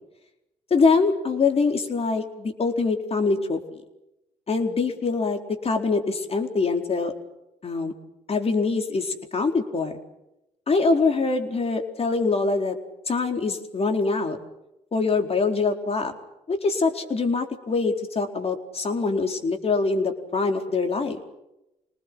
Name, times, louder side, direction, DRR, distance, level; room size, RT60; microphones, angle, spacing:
voice 1, 0.7-3.8 4.5-7.1 7.6-7.9 8.3-10.0 10.7-12.8 13.1-14.4 14.9-16.1 16.5-21.2, left 4 dB, 40° left, 4 dB, 4.3 m, -24 dB
27.0 x 19.5 x 7.7 m, 0.89 s
supercardioid pair, 65°, 16 cm